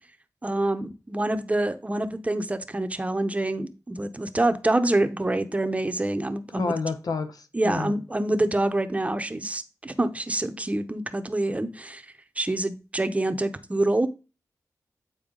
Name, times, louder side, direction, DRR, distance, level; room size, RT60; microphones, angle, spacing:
voice 1, 0.4-6.7 7.5-12.0 12.4-14.1, right 1 dB, 20° right, 0.9 m, -26 dB
voice 2, 6.5-7.9, left 4 dB, 75° left, 1.0 m, -29 dB
8.9 x 4.3 x 3.8 m
cardioid pair, 65°, 6 cm